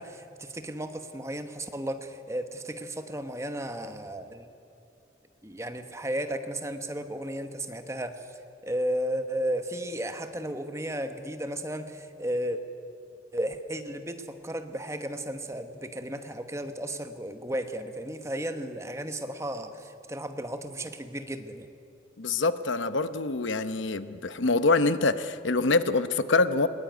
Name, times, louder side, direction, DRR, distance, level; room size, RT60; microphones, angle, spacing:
voice 1, 0.0-4.5 5.4-12.6 13.3-21.7, right 1 dB, 15° right, 1.1 m, -34 dB
voice 2, 22.2-26.7, left 3 dB, 75° left, 0.9 m, -25 dB
21.0 x 20.0 x 9.3 m
head